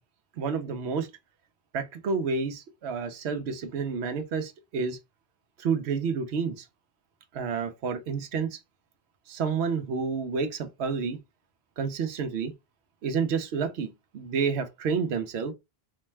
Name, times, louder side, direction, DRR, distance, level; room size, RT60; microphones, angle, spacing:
voice 1, 0.4-1.1 1.7-5.0 5.6-6.7 7.3-8.6 9.3-11.2 11.8-12.5 13.0-15.5, right 5 dB, 90° right, 0.9 m, -29 dB
4.0 x 2.2 x 3.1 m
omnidirectional pair, 1.1 m